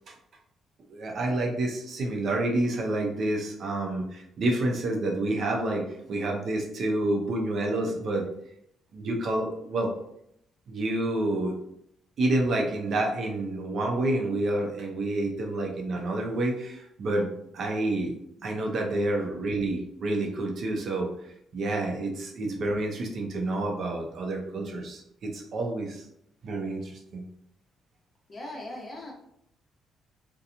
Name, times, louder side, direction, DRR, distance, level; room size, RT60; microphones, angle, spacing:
voice 1, 0.9-8.3 8.9-9.9 10.7-11.5 12.2-17.3 17.5-18.1 18.4-21.1 21.5-26.0 26.4-27.2, right 2 dB, 60° right, 1 dB, 0.6 m, -28 dB
voice 2, 28.3-29.1, left 1 dB, 35° left, -1 dB, 0.9 m, -39 dB
2.8 x 2.2 x 2.6 m, 0.73 s
cardioid pair, 90°, 0 cm